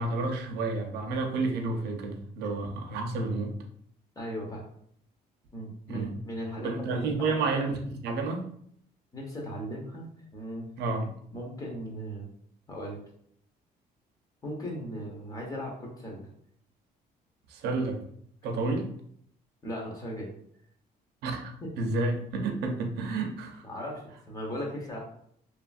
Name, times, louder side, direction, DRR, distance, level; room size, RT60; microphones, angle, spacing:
voice 1, 0.0-3.5 5.9-6.2 6.6-8.5 10.8-11.1 17.5-18.0 18.4-18.9 21.2-23.6, right 3 dB, 80° right, 4 dB, 0.6 m, -30 dB
voice 2, 4.2-4.6 5.5-7.7 9.1-10.1 10.3-10.7 11.3-12.3 12.7-13.0 14.4-16.3 18.5-18.8 19.6-20.3 21.6-21.7 23.6-25.0, equal, 20° left, -2 dB, 0.9 m, -37 dB
2.9 x 2.4 x 2.4 m, 0.66 s
cardioid pair, 110°, 17 cm